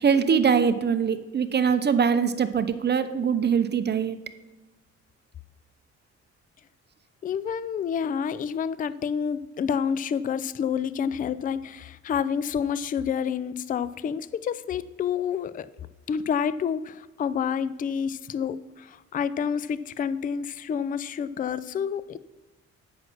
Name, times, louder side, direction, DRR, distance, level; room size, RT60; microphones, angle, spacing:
voice 1, 0.0-4.2, right 6 dB, 35° right, 11 dB, 0.7 m, -23 dB
voice 2, 7.2-15.7 16.1-22.2, left 7 dB, 30° left, 16 dB, 0.3 m, -28 dB
8.3 x 6.0 x 6.0 m, 1.1 s
cardioid pair, 90°, 30 cm